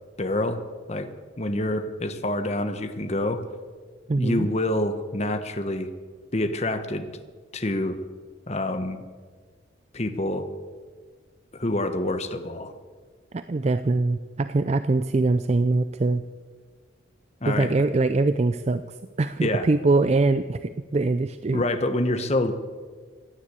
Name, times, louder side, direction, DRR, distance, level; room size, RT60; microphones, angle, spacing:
voice 1, 0.2-0.6 0.9-1.1 1.4-3.4 4.2-5.9 6.3-7.1 7.5-8.0 8.5-9.0 9.9-10.5 11.5-12.7 17.4-17.8 19.4-19.7 21.5-22.5, left 1 dB, 35° left, 9 dB, 1.1 m, -26 dB
voice 2, 4.1-4.5 13.3-16.2 17.5-18.8 19.2-21.6, right 3 dB, 35° right, 12 dB, 0.4 m, -23 dB
16.5 x 10.5 x 8.4 m, 1.5 s
head